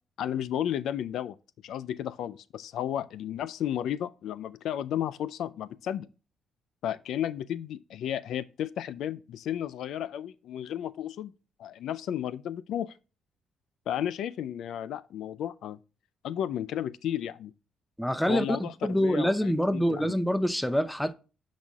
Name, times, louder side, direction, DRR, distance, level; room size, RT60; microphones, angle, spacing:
voice 1, 0.2-1.4 1.6-6.1 6.8-11.3 11.6-12.9 13.9-15.8 16.2-17.5 18.3-20.1, left 10 dB, 75° left, 0.4 m, -33 dB
voice 2, 18.0-21.1, equal, 5° left, 0.6 m, -26 dB
12.5 x 4.1 x 2.3 m
cardioid pair, 90°, 0 cm